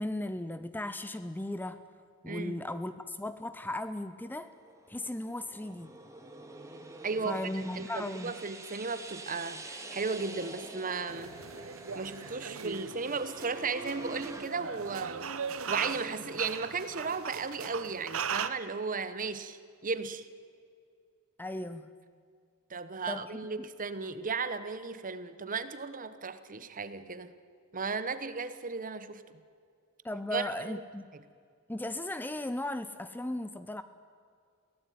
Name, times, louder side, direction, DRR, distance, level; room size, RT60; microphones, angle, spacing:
voice 1, 0.0-1.8 2.2-4.5 4.9-5.9 7.2-8.3 21.4-21.9 23.1-23.3 23.6-23.7 30.0-31.1 31.7-33.8, left 1 dB, 10° left, 12 dB, 0.6 m, -36 dB
voice 2, 2.2-2.6 7.0-11.3 11.9-15.3 15.7-20.3 22.7-27.3 27.7-29.2 30.3-30.8, right 4 dB, 40° right, 12 dB, 1.1 m, -35 dB
sound 1, 4.4-14.5, right 2 dB, 15° right, 2.1 m, -47 dB
sound 2, 11.1-18.5, right 6 dB, 70° right, 1.1 m, -39 dB
22.5 x 17.0 x 9.3 m, 2.3 s
head